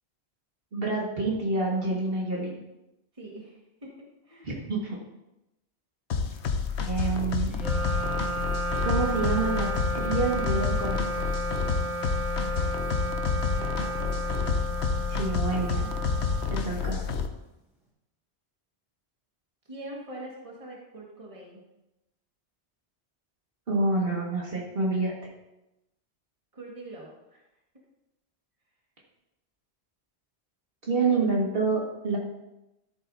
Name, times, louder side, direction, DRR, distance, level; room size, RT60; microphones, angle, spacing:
voice 1, 0.7-2.6 4.4-5.0 6.9-7.6 8.8-9.7 10.0-11.3 15.1-15.9 16.5-17.0 23.7-25.3 30.8-32.2, right 3 dB, 55° right, -3 dB, 2.0 m, -28 dB
voice 2, 3.1-3.6 3.8-3.9 4.2-4.6 13.6-14.1 19.7-21.6 26.5-27.4 31.0-31.4, right 1 dB, 30° right, -3 dB, 1.9 m, -43 dB
sound 1, 6.1-17.3, left 5 dB, 80° left, 1.1 m, -29 dB
Wind instrument woodwind instrument, 7.5-17.1, right 1 dB, ahead, 2.7 m, -33 dB
13.0 x 7.9 x 2.7 m, 0.93 s
omnidirectional pair, 1.1 m